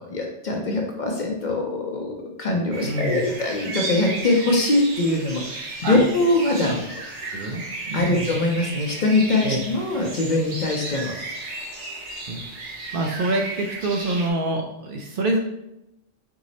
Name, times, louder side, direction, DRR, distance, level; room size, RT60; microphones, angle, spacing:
voice 1, 0.0-2.1 2.4-7.0 7.9-11.1, left 2 dB, 50° left, 0 dB, 0.7 m, -22 dB
sound 1, 2.7-14.3, right 2 dB, 85° right, 1.2 m, -34 dB
voice 2, 2.8-3.2 5.8-6.0 6.6-6.8 7.3-8.3 9.4-9.6 12.3-12.4 12.9-15.4, right 2 dB, 60° right, 1 dB, 0.6 m, -26 dB
4.7 x 2.0 x 4.0 m, 0.89 s
omnidirectional pair, 1.2 m